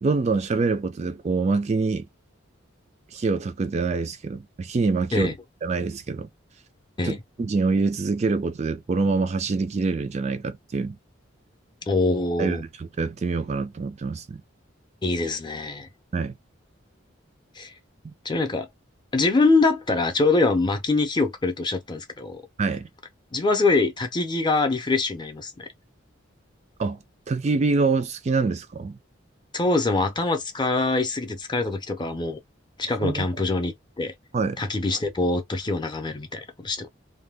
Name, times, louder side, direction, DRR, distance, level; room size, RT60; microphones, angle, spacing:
voice 1, 0.0-2.1 3.1-5.3 5.6-6.3 7.0-11.0 12.4-14.4 16.1-16.3 18.0-18.1 22.6-22.9 26.8-27.0 27.3-29.0 33.0-33.4 34.3-34.6, right 4 dB, 35° right, 0.3 m, -25 dB
voice 2, 11.9-12.6 15.0-15.9 17.6-17.7 18.2-18.7 19.1-22.4 23.3-25.7 29.5-32.4 32.8-34.1 34.6-36.9, left 3 dB, 25° left, 0.6 m, -24 dB
2.7 x 2.2 x 3.4 m
head